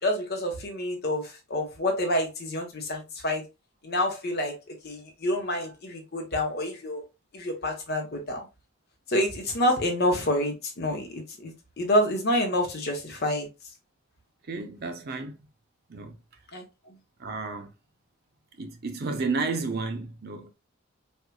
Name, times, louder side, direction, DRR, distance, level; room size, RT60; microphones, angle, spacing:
voice 1, 0.0-3.4 3.8-4.5 4.8-7.0 7.3-8.5 9.1-13.5 16.5-17.0, left 1 dB, 50° left, 1.0 m, -28 dB
voice 2, 14.5-15.4 15.9-16.2 17.2-17.7 18.6-20.5, right 3 dB, 50° right, 0.6 m, -32 dB
4.4 x 2.4 x 2.3 m
head